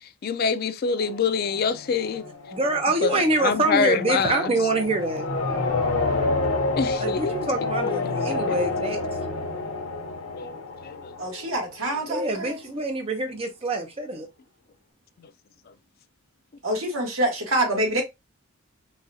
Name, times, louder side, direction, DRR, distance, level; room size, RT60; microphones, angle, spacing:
voice 1, 0.2-2.2 3.0-4.5 6.8-7.4 8.5-8.6 10.4-10.5 10.8-11.0, left 5 dB, 45° left, 0.3 m, -25 dB
sound 1, 1.0-11.8, left 3 dB, 85° left, 0.7 m, -29 dB
voice 2, 2.5-5.3 7.0-9.0 12.1-14.3, right 2 dB, 25° right, 0.6 m, -25 dB
voice 3, 11.2-12.6 16.6-18.0, right 1 dB, 75° right, 1.4 m, -26 dB
4.0 x 2.3 x 2.6 m
head